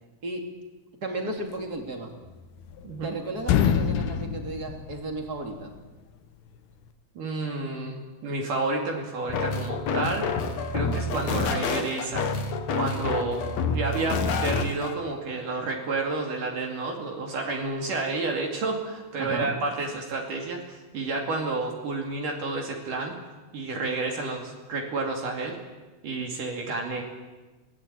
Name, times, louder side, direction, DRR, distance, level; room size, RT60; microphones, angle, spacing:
voice 1, 1.0-2.1 3.0-5.7 19.2-19.5, right 2 dB, 25° right, 3 dB, 2.9 m, -33 dB
sound 1, 2.3-3.1 3.4-5.5, left 8 dB, 85° left, 3.2 m, -26 dB
voice 2, 2.8-3.1 7.2-10.3 10.7-12.3 12.7-13.4 13.7-23.2 23.5-25.6 26.0-27.0, right 3 dB, 60° right, 1 dB, 3.9 m, -30 dB
sound 2, 9.3-14.9, left 4 dB, 55° left, 2.3 m, -28 dB
24.0 x 17.5 x 9.0 m, 1.2 s
omnidirectional pair, 4.5 m